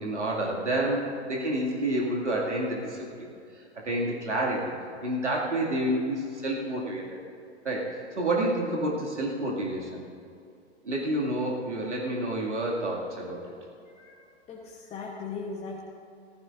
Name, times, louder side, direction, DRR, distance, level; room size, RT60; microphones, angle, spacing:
voice 1, 0.0-3.3 3.8-4.7 5.0-7.2 7.6-10.0 10.8-13.5, right 1 dB, 90° right, -3 dB, 2.4 m, -29 dB
voice 2, 14.5-15.8, left 4 dB, 20° left, -2 dB, 1.1 m, -38 dB
19.0 x 14.0 x 2.6 m, 2.5 s
hypercardioid pair, 115°, 34 cm